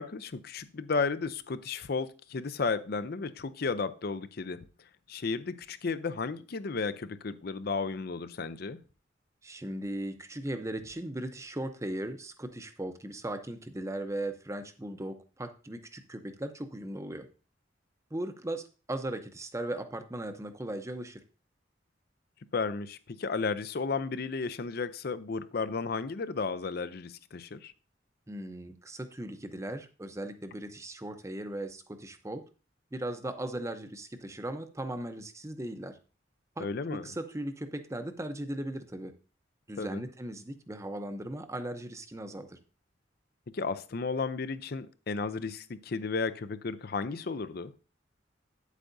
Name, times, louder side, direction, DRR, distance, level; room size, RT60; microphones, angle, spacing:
voice 1, 0.0-4.6 5.1-8.8 22.5-27.7 36.6-37.1 39.8-40.0 43.5-47.7, left 4 dB, 55° left, 0.5 m, -33 dB
voice 2, 9.4-17.3 18.1-21.2 28.3-32.4 32.9-36.0 36.6-39.1 39.7-42.6, right 1 dB, 15° right, 0.7 m, -38 dB
8.9 x 8.2 x 2.6 m
head